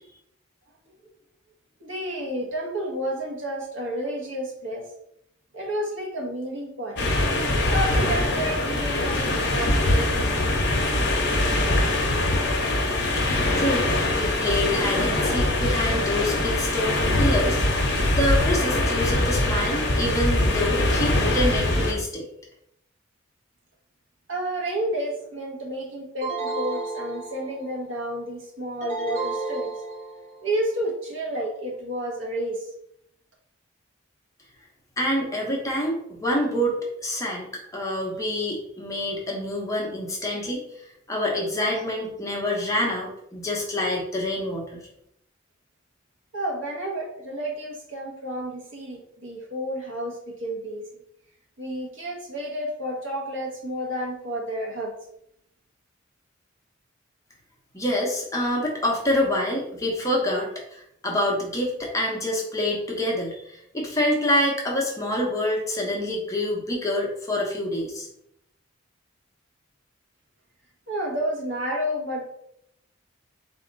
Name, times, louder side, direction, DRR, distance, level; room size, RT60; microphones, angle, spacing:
voice 1, 1.8-4.9 5.5-7.0 7.6-10.4 24.3-29.7 30.4-32.7 46.3-50.9 51.6-54.9 70.9-72.3, equal, 70° right, -1 dB, 1.2 m, -31 dB
sound 1, 7.0-21.9, left 1 dB, 55° left, 0.9 m, -23 dB
voice 2, 13.3-22.3 35.0-37.5 37.7-40.6 41.1-44.9 57.7-68.1, left 1 dB, 15° left, -2 dB, 0.9 m, -27 dB
sound 2, 26.2-27.8 28.8-30.4, right 3 dB, 40° right, 1.3 m, -32 dB
4.1 x 2.8 x 3.9 m, 0.75 s
head